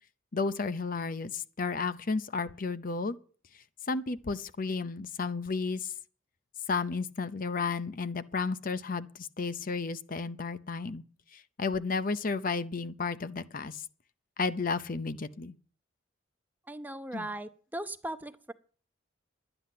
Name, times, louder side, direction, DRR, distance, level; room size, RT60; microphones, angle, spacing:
voice 1, 0.3-3.2 3.9-5.9 6.7-11.0 11.3-13.8 14.4-15.6 17.1-17.3, left 4 dB, 45° left, 0.6 m, -32 dB
voice 2, 16.7-18.5, right 1 dB, 10° right, 0.6 m, -38 dB
11.5 x 9.9 x 7.6 m
head